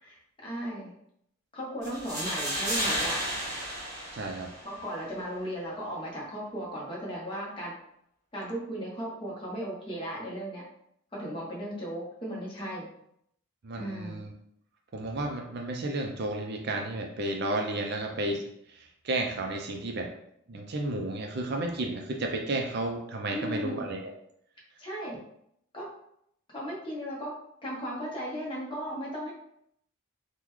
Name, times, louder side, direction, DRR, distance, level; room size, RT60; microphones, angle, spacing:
voice 1, 0.0-0.9 1.5-3.2 4.6-7.7 8.3-10.6 11.1-12.9 13.7-14.2 23.3-23.8 24.8-25.2 25.7-25.9 26.5-27.3 27.6-29.3, equal, 25° left, -4 dB, 0.9 m, -36 dB
sound 1, 1.8-4.8, equal, 15° right, 1.2 m, -32 dB
voice 2, 4.1-4.5 13.6-14.3 14.9-18.4 18.7-20.1 20.5-24.1, right 2 dB, 50° right, 2 dB, 0.4 m, -32 dB
3.7 x 2.2 x 3.0 m, 0.73 s
head